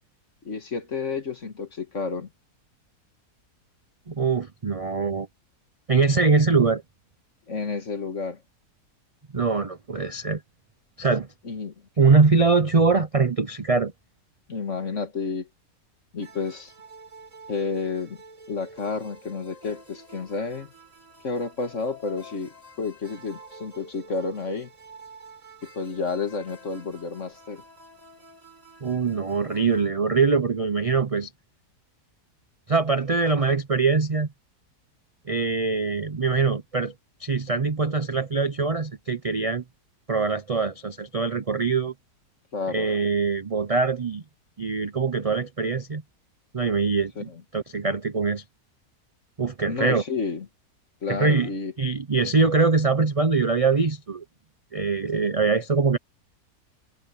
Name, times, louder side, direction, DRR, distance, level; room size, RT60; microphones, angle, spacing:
voice 1, 0.4-2.3 7.5-8.4 11.4-11.7 14.5-15.5 16.1-16.7 17.5-18.2 18.5-20.7 21.2-24.7 25.6-27.6 42.5-42.9 47.2-47.4 49.7-50.5 51.0-51.7, left 4 dB, 50° left, 2.2 m, -30 dB
voice 2, 4.1-5.3 5.9-6.8 9.3-10.4 11.0-11.3 12.0-13.9 28.8-31.3 32.7-34.3 35.3-36.9 37.2-39.6 40.1-41.9 42.7-44.2 44.6-46.0 46.5-48.4 49.4-50.0 51.1-51.5 51.8-54.2 54.7-56.0, right 4 dB, 40° right, 0.5 m, -23 dB
sound 1, 16.2-29.9, right 1 dB, 55° right, 8.6 m, -48 dB
omnidirectional pair, 1.7 m